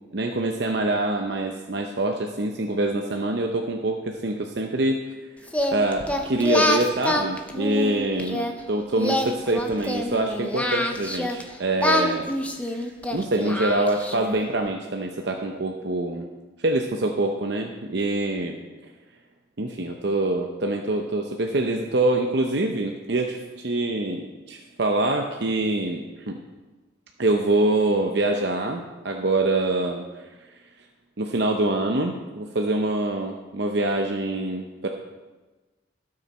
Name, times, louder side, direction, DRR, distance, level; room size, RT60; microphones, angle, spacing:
voice 1, 0.1-5.0 5.7-12.3 12.6-16.3 16.6-18.6 19.6-26.4 27.2-30.3 31.2-34.9, right 2 dB, 60° right, 2 dB, 0.7 m, -25 dB
Singing, 5.5-8.5 8.9-11.4 11.8-14.4, left 1 dB, 5° left, 0.6 m, -26 dB
16.5 x 6.5 x 4.2 m, 1.2 s
head